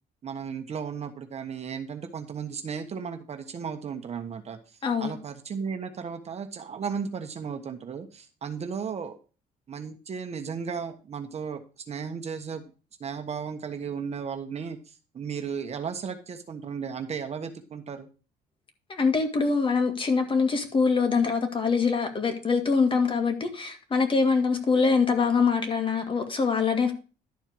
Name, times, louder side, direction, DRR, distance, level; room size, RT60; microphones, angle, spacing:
voice 1, 0.2-4.6 5.0-9.2 9.7-12.7 13.0-18.1, right 6 dB, 40° right, 1.3 m, -35 dB
voice 2, 4.8-5.2 18.9-26.9, left 5 dB, 30° left, 2.0 m, -24 dB
11.5 x 4.5 x 6.2 m
cardioid pair, 110°, 17 cm